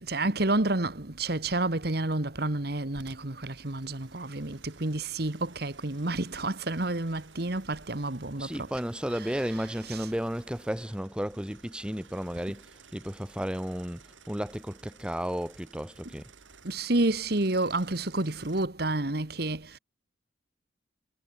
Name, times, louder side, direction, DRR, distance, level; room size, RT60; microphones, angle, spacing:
voice 1, 0.0-8.7 9.9-10.0 16.6-19.8, right 2 dB, 55° right, 1.6 m, -29 dB
sound 1, 2.9-18.7, right 5 dB, 90° right, 4.7 m, -56 dB
voice 2, 8.4-16.3, equal, 5° right, 1.0 m, -33 dB
head